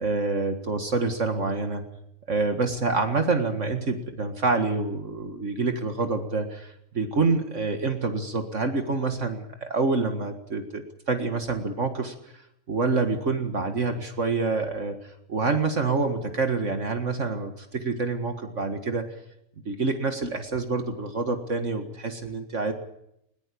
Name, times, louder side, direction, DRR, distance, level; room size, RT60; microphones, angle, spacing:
voice 1, 0.0-1.8 2.3-12.1 12.7-19.0 19.7-22.7, right 3 dB, 60° right, 6 dB, 2.1 m, -27 dB
21.0 x 19.5 x 8.5 m, 0.78 s
omnidirectional pair, 1.5 m